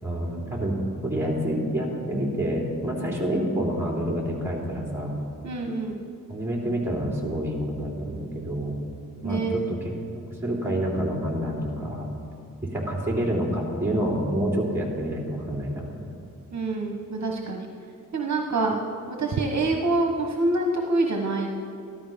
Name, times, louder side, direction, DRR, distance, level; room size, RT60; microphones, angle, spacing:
voice 1, 0.0-0.8 1.0-5.2 6.3-8.7 9.2-9.4 9.7-9.8 10.1-12.1 12.7-16.1, right 1 dB, 10° right, -3 dB, 3.1 m, -28 dB
voice 2, 5.4-6.0 9.2-9.5 16.5-17.7 18.1-18.8 19.1-21.5, right 2 dB, 55° right, 2 dB, 1.2 m, -26 dB
14.0 x 12.5 x 5.2 m, 2.4 s
wide cardioid pair, 115°, 33 cm